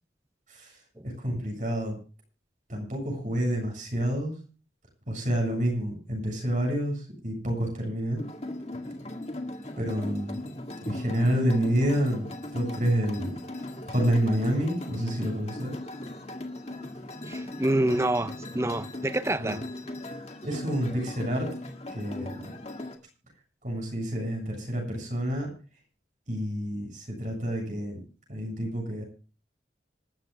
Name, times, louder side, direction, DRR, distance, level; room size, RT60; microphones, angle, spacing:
voice 1, 0.5-0.8 1.0-2.0 2.7-4.3 5.1-8.2 9.8-10.4 10.9-13.4 13.8-15.7 19.4-19.6 20.4-21.5 21.9-22.5 23.6-25.5 26.3-28.0 28.3-29.0, equal, 45° right, 7.5 m, -28 dB
sound 1, 8.2-23.0, left 1 dB, 35° left, 1.9 m, -39 dB
voice 2, 17.2-19.6, right 1 dB, 15° right, 0.6 m, -27 dB
26.5 x 13.5 x 2.3 m
head